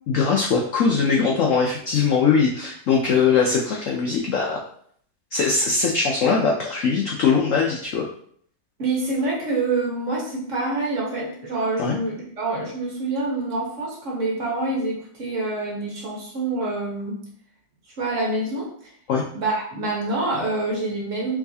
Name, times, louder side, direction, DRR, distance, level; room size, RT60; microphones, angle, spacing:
voice 1, 0.1-4.6 5.3-8.1 11.8-12.0 19.1-19.2, left 5 dB, 75° left, -1 dB, 0.7 m, -21 dB
voice 2, 8.8-17.2 18.0-18.7 19.3-21.4, right 2 dB, 50° right, -3 dB, 1.2 m, -26 dB
4.7 x 3.1 x 2.7 m, 0.62 s
omnidirectional pair, 1.9 m